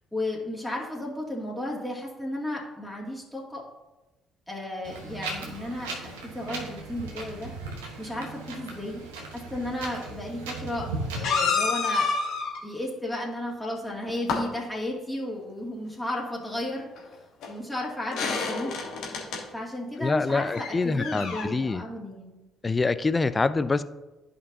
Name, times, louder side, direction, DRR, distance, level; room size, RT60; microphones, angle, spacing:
voice 1, 0.1-3.6 4.5-7.5 8.0-9.0 9.3-12.1 12.6-16.9 17.5-18.7 19.5-22.4, left 1 dB, 10° left, -3 dB, 2.3 m, -34 dB
Wind, 4.8-11.3, right 3 dB, 80° right, 1.0 m, -37 dB
sound 1, 10.0-10.1 11.2-12.6 13.9-14.4 17.0-17.1 17.4-17.5 18.1-19.4 20.5-21.4, left 4 dB, 65° left, 1.4 m, -28 dB
voice 2, 20.0-21.8 22.6-23.8, left 3 dB, 30° left, 14 dB, 0.4 m, -25 dB
11.0 x 5.3 x 2.7 m, 1.1 s
hypercardioid pair, 50°, 0 cm